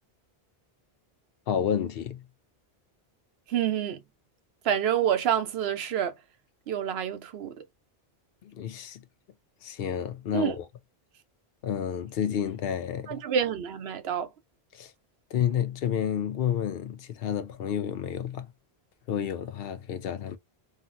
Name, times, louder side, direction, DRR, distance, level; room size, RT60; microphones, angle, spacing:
voice 1, 1.5-2.2 8.4-9.0 9.6-10.6 11.6-13.2 14.7-14.9 15.3-18.5 19.1-20.4, left 9 dB, 70° left, 0.8 m, -30 dB
voice 2, 3.5-4.0 4.6-6.2 6.7-7.6 10.3-10.6 13.1-14.3, right 9 dB, 80° right, 0.9 m, -27 dB
2.8 x 2.8 x 2.4 m
omnidirectional pair, 1.1 m